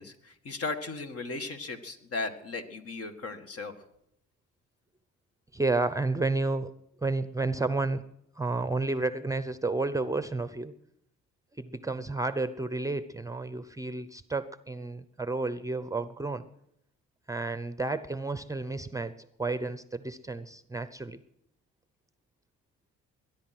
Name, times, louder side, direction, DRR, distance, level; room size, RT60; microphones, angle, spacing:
voice 1, 0.0-3.7, left 3 dB, 50° left, 7 dB, 2.0 m, -36 dB
voice 2, 5.5-6.7 7.0-8.0 8.4-10.7 11.6-16.5 17.3-21.2, right 3 dB, 10° right, 13 dB, 0.7 m, -31 dB
21.0 x 11.0 x 6.1 m, 0.77 s
cardioid pair, 90°, 30 cm